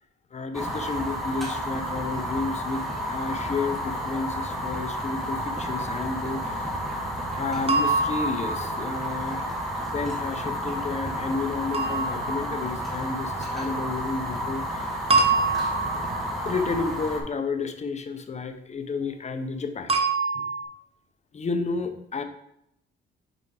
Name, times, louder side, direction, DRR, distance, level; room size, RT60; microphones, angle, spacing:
voice 1, 0.3-6.7 7.3-9.5 9.8-14.8 16.0-16.1 16.4-19.9 20.3-20.4 21.3-22.2, left 4 dB, 35° left, 8 dB, 0.8 m, -31 dB
Fire, 0.5-17.2, equal, ahead, 1.6 m, -31 dB
sound 1, 7.7-9.1 11.7-12.9 15.1-16.5 19.9-20.6, right 4 dB, 30° right, 1.0 m, -25 dB
5.1 x 4.7 x 4.8 m, 0.78 s
cardioid pair, 90°, 20 cm